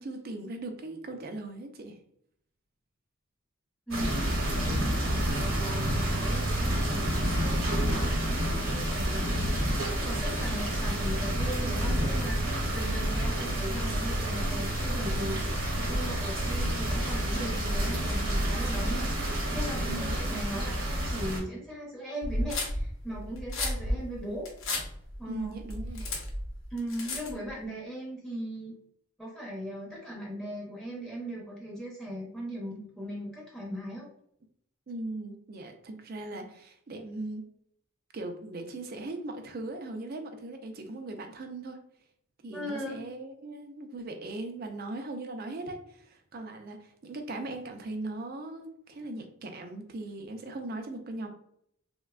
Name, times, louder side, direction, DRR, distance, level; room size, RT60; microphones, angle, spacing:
voice 1, 0.0-2.0 19.9-20.2 25.3-26.1 34.9-37.5 38.1-41.8 42.4-51.3, right 2 dB, 45° right, 5 dB, 0.4 m, -39 dB
voice 2, 3.9-15.4 15.9-19.1 19.5-24.5 25.2-25.6 26.7-28.7 29.2-34.1 42.5-43.0, equal, ahead, -5 dB, 0.6 m, -38 dB
sound 1, 3.9-21.4, right 1 dB, 65° right, 0.9 m, -29 dB
Plastic pen scraping on a rock, 22.2-27.5, left 1 dB, 65° left, 0.8 m, -33 dB
3.3 x 2.1 x 2.3 m, 0.71 s
head